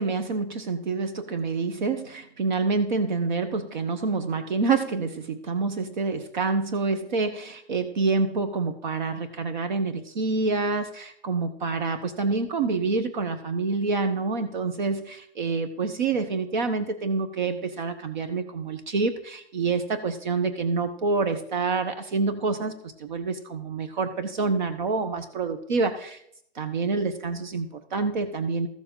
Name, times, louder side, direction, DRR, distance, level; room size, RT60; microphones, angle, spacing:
voice 1, 0.0-26.2 26.5-28.7, right 4 dB, 45° right, 9 dB, 1.0 m, -27 dB
14.0 x 7.1 x 3.8 m, 0.70 s
hypercardioid pair, 170°, 32 cm